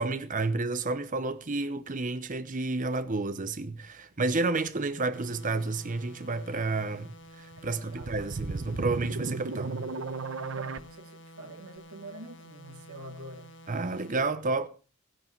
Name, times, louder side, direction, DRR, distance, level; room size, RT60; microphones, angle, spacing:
voice 1, 0.0-9.9 13.7-14.7, right 3 dB, 35° right, 0.9 m, -31 dB
sound 1, 5.1-14.1, equal, 55° left, 1.6 m, -51 dB
sound 2, 7.5-10.8, right 3 dB, 65° right, 0.9 m, -35 dB
voice 2, 7.7-8.2 10.5-13.6 14.4-14.5, right 2 dB, 90° right, 2.4 m, -46 dB
15.5 x 11.0 x 4.6 m
head